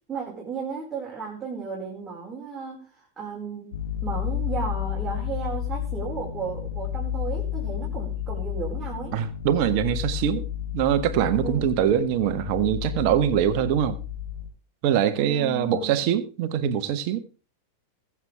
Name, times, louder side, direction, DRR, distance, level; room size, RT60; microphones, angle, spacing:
voice 1, 0.1-3.7 4.0-9.1 11.4-11.7 15.2-16.0, right 5 dB, 15° right, 5.1 m, -34 dB
sound 1, 3.7-14.5, left 10 dB, 60° left, 1.3 m, -31 dB
voice 2, 9.1-10.4 10.7-14.0 14.8-17.2, right 10 dB, 45° right, 1.5 m, -23 dB
22.0 x 7.5 x 3.5 m
figure-of-eight pair, 90°, 0 cm